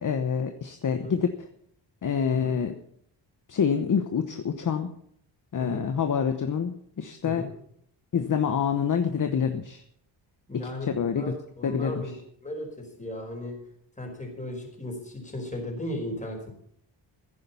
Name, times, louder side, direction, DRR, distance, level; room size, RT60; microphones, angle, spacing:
voice 1, 0.0-1.5 2.0-2.8 3.5-4.9 5.5-7.4 8.1-9.8 10.5-11.3 11.6-12.1, left 7 dB, 45° left, 7 dB, 1.0 m, -27 dB
voice 2, 10.5-12.1 12.4-12.7 13.0-13.5 14.0-16.5, left 1 dB, 15° left, 2 dB, 4.8 m, -36 dB
15.0 x 10.5 x 5.6 m, 0.68 s
cardioid pair, 115°, 46 cm